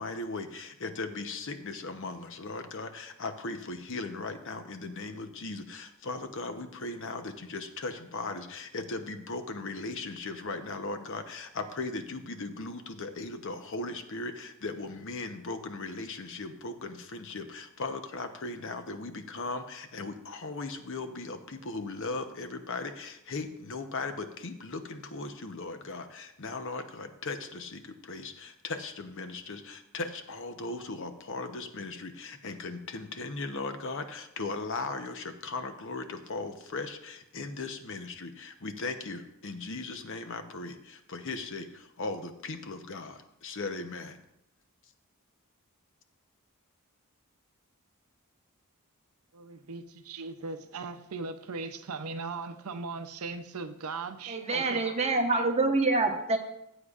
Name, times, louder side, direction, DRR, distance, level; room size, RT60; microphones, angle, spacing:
voice 1, 0.0-44.2, left 3 dB, 60° left, 8 dB, 0.9 m, -38 dB
voice 2, 49.3-54.9 55.3-55.4, right 4 dB, 80° right, 10 dB, 0.6 m, -39 dB
voice 3, 54.3-56.4, right 3 dB, 30° right, 2 dB, 1.1 m, -26 dB
14.5 x 8.3 x 2.5 m, 0.81 s
head